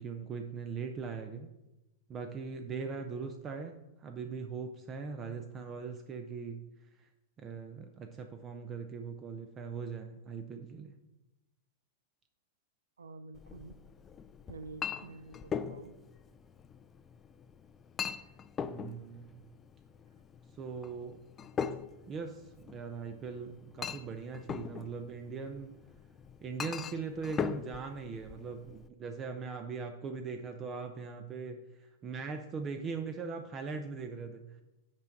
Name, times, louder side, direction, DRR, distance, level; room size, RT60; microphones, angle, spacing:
voice 1, 0.0-1.5 2.1-3.7 4.0-6.6 7.0-7.1 7.4-10.9 18.6-19.4 20.6-21.2 22.1-25.7 26.4-34.6, right 5 dB, 30° right, 6 dB, 0.6 m, -40 dB
voice 2, 13.0-13.7 14.5-16.0 18.2-18.3, right 3 dB, 85° right, 10 dB, 0.5 m, -48 dB
Chink clink, 13.3-28.9, left 7 dB, 25° left, 0.4 m, -41 dB
6.0 x 4.6 x 5.8 m, 0.99 s
hypercardioid pair, 105°, 0 cm